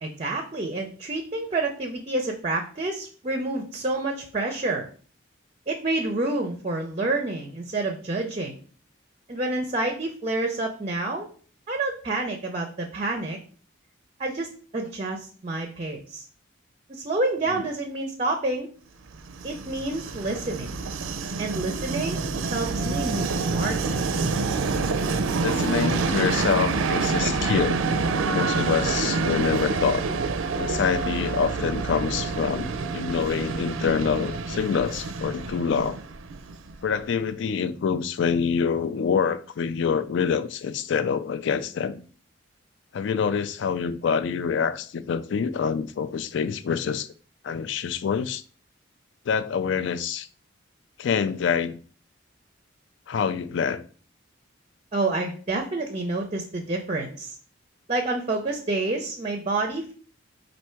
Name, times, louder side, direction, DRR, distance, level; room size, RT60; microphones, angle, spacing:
voice 1, 0.0-4.9 5.7-8.6 9.3-11.3 11.7-13.4 14.2-16.3 16.9-18.7 19.4-20.7 21.4-22.2 22.5-24.0 54.9-57.3 57.9-59.9, right 2 dB, 30° right, 0.5 m, -28 dB
Train, 19.1-36.9, right 4 dB, 90° right, 0.5 m, -27 dB
voice 2, 25.4-27.8 28.3-30.0 30.6-36.0 36.8-42.0 42.9-47.1 47.4-48.4 49.3-50.3 51.0-51.8 53.1-53.8, left 6 dB, 65° left, 0.3 m, -26 dB
4.5 x 2.6 x 4.4 m
head